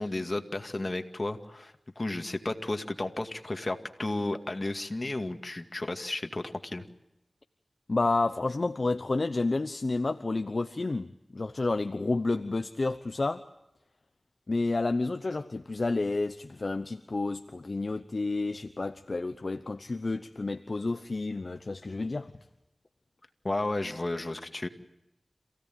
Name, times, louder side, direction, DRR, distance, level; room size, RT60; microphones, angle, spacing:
voice 1, 0.0-6.8 23.4-24.7, left 2 dB, 40° left, 6 dB, 2.2 m, -33 dB
voice 2, 7.9-13.4 14.5-22.3, left 3 dB, 60° left, 9 dB, 0.9 m, -30 dB
28.0 x 17.0 x 9.2 m, 0.93 s
wide cardioid pair, 55°, 0 cm